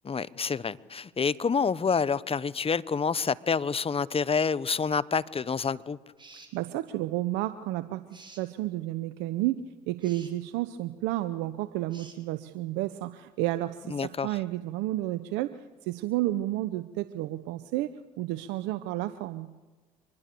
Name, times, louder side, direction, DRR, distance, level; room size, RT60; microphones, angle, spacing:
voice 1, 0.0-6.0 13.9-14.3, left 5 dB, 30° left, 18 dB, 1.1 m, -28 dB
sound 1, 6.2-6.6 8.1-8.5 10.0-10.3 11.9-12.2, right 3 dB, 25° right, 6.0 m, -50 dB
voice 2, 6.5-8.0 8.4-9.6 9.9-19.5, right 16 dB, 75° right, 13 dB, 0.9 m, -31 dB
25.0 x 20.5 x 6.9 m, 1.2 s
hypercardioid pair, 55°, 18 cm